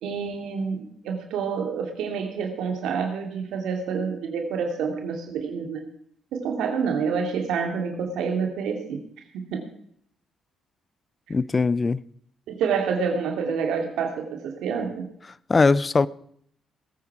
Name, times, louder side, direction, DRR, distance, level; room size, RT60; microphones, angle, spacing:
voice 1, 0.0-5.8 6.3-9.0 9.3-9.7 12.5-15.0, right 6 dB, 85° right, 2.4 m, -28 dB
voice 2, 11.3-12.0 15.5-16.1, left 4 dB, 30° left, 0.5 m, -20 dB
19.5 x 9.3 x 4.8 m
cardioid pair, 90°, 0 cm